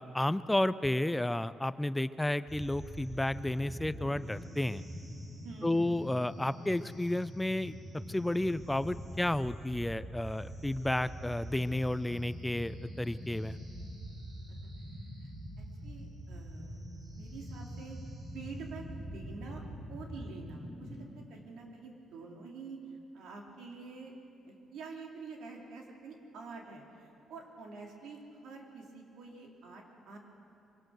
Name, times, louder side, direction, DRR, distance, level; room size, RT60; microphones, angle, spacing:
voice 1, 0.0-4.8 5.6-7.7 8.1-13.6, left 1 dB, 10° left, 15 dB, 0.4 m, -32 dB
sound 1, 2.5-21.0, equal, 55° right, 6.3 m, -44 dB
voice 2, 5.4-6.0 14.5-14.7 15.2-15.3 15.8-16.8 17.1-18.0 18.3-19.6 19.9-22.8 23.1-24.1 24.5-30.2, right 4 dB, 80° right, 0 dB, 3.0 m, -47 dB
24.0 x 17.5 x 6.5 m, 2.6 s
cardioid pair, 90°, 0 cm